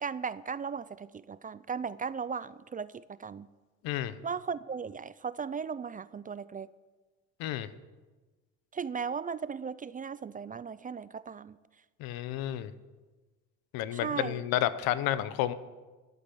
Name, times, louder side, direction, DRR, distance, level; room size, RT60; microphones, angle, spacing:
voice 1, 0.0-3.5 4.2-6.7 8.7-11.6 13.9-14.4, right 6 dB, 25° right, 17 dB, 0.4 m, -37 dB
voice 2, 12.0-12.7 13.7-15.5, left 13 dB, 80° left, 14 dB, 0.9 m, -30 dB
12.0 x 8.3 x 9.8 m, 1.3 s
cardioid pair, 95°, 35 cm